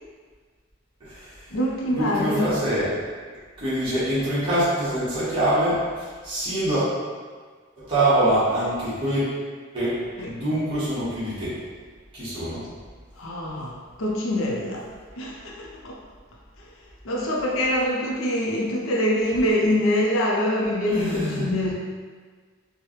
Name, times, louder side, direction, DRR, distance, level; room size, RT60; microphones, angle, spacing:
voice 1, 1.0-1.4 1.9-2.9 3.6-6.8 7.8-9.2 9.7-10.0 10.3-11.5 12.1-12.6 20.9-21.4, right 1 dB, 25° right, -13 dB, 1.2 m, -24 dB
voice 2, 1.5-2.5 6.7-6.8 10.2-10.3 13.2-14.9 15.2-16.0 17.0-21.7, left 1 dB, 85° left, -3 dB, 0.6 m, -24 dB
4.7 x 2.2 x 3.0 m, 1.5 s
head